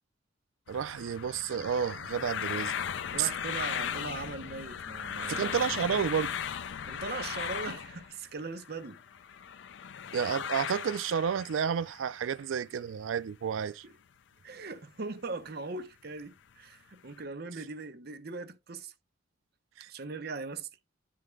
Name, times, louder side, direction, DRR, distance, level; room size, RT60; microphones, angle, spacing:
sound 1, 0.7-12.1 12.5-12.6, left 8 dB, 65° left, 0.4 m, -37 dB
voice 1, 0.7-2.7 3.2-3.3 5.3-6.3 10.1-13.8 19.8-19.9, right 7 dB, 85° right, 0.4 m, -31 dB
voice 2, 3.1-5.5 6.8-9.0 13.8-13.9 14.4-18.9 19.9-20.7, right 3 dB, 55° right, 0.7 m, -40 dB
10.5 x 3.7 x 3.2 m
head